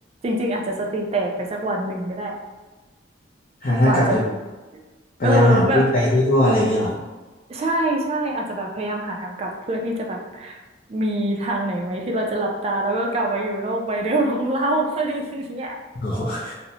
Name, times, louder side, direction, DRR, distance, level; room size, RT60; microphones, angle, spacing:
voice 1, 0.2-2.4 3.8-4.3 5.2-5.9 7.5-10.6 10.9-15.8, right 1 dB, 35° right, 1 dB, 0.3 m, -24 dB
voice 2, 3.6-4.2 5.2-7.0 16.0-16.5, left 1 dB, 45° left, -5 dB, 0.4 m, -19 dB
2.6 x 2.0 x 2.7 m, 1.2 s
head